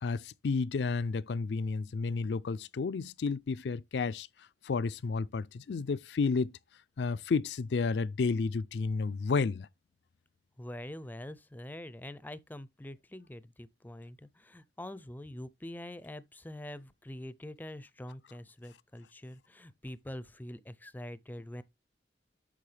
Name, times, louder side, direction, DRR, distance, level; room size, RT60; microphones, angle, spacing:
voice 1, 0.0-4.3 4.6-6.5 7.0-9.7, left 4 dB, 70° left, 0.4 m, -31 dB
voice 2, 10.6-21.6, left 1 dB, 10° left, 0.5 m, -45 dB
8.6 x 6.1 x 3.3 m
head